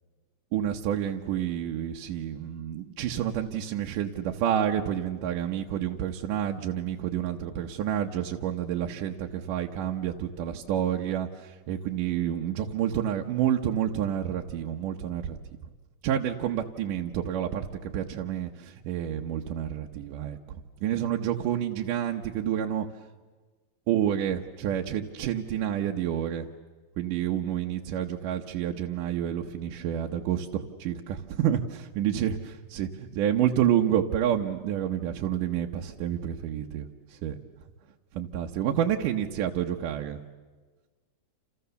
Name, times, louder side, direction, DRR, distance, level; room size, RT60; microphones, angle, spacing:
voice 1, 0.5-15.4 16.0-22.9 23.9-26.5 27.0-32.4 32.7-37.4 38.1-40.2, right 10 dB, 80° right, 2 dB, 2.6 m, -29 dB
29.0 x 28.5 x 7.0 m, 1.3 s
omnidirectional pair, 3.7 m